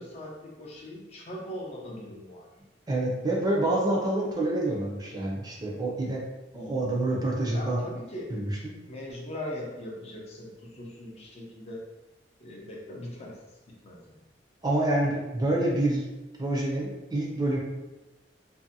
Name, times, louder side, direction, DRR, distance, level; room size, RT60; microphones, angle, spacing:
voice 1, 0.0-2.5 6.5-6.8 7.5-8.4 8.8-11.8 12.4-13.4 13.7-14.2, left 1 dB, 35° left, -2 dB, 0.5 m, -40 dB
voice 2, 2.9-6.2 6.5-7.8 8.3-8.7 14.6-16.1 16.4-17.6, right 1 dB, 25° right, -3 dB, 0.5 m, -27 dB
2.5 x 2.1 x 2.6 m, 1.1 s
head